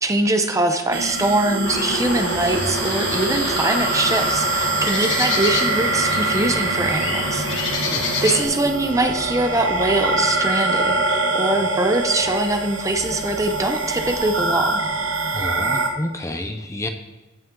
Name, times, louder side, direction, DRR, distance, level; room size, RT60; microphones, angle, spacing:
voice 1, 0.0-7.8 8.2-14.8, right 2 dB, 15° right, 5 dB, 0.8 m, -22 dB
sound 1, 0.9-15.9, right 3 dB, 90° right, 1.5 m, -24 dB
sound 2, 1.6-8.4, left 3 dB, 70° left, 1.8 m, -27 dB
voice 2, 15.3-16.9, left 1 dB, 15° left, 6 dB, 0.8 m, -29 dB
15.5 x 8.3 x 3.9 m, 1.2 s
head